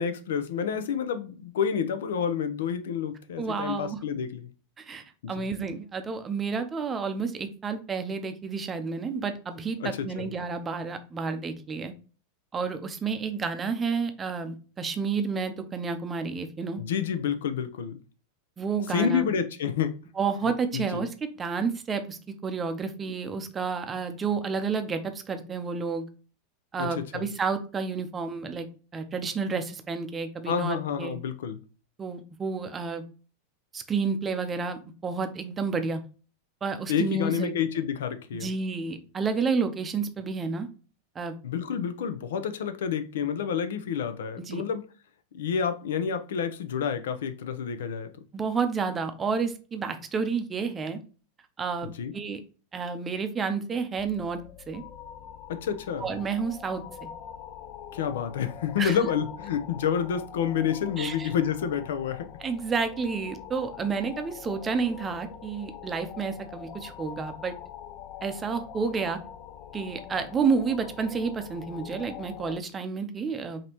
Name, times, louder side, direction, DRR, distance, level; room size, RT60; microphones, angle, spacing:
voice 1, 0.0-4.5 5.2-5.4 9.8-10.3 16.8-18.0 18.9-20.0 20.7-21.0 26.8-27.3 30.5-31.6 36.9-38.5 41.4-44.8 45.3-48.1 52.0-52.1 55.5-56.1 57.9-62.3, left 7 dB, 90° left, 0.6 m, -29 dB
voice 2, 3.4-4.0 4.8-11.9 12.5-16.8 18.6-19.3 20.2-21.1 21.4-26.1 26.7-28.7 28.9-31.2 32.0-33.0 33.7-36.0 36.6-37.5 38.3-40.7 41.2-41.3 44.5-44.6 48.3-51.0 51.6-52.4 52.7-54.4 54.7-54.8 56.0-57.1 58.8-59.0 61.0-61.3 62.4-67.5 68.2-69.2 69.7-73.6, right 5 dB, 15° right, 0.5 m, -30 dB
sound 1, 54.0-72.6, left 9 dB, 35° left, 0.3 m, -44 dB
5.2 x 2.8 x 2.9 m
supercardioid pair, 155°, 0 cm